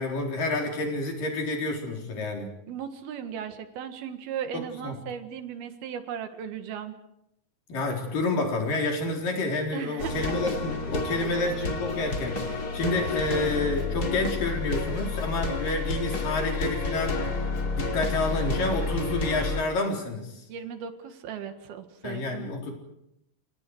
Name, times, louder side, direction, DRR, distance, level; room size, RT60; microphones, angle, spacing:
voice 1, 0.0-2.5 4.5-5.0 7.7-17.2 17.7-20.4 22.0-22.7, left 2 dB, 65° left, 1 dB, 5.6 m, -29 dB
voice 2, 2.7-6.9 9.7-10.4 11.2-11.5 20.5-22.5, right 8 dB, 85° right, 8 dB, 3.7 m, -37 dB
sound 1, 10.0-19.6, left 3 dB, 30° left, 2.6 m, -30 dB
29.0 x 28.0 x 4.8 m, 0.78 s
omnidirectional pair, 4.2 m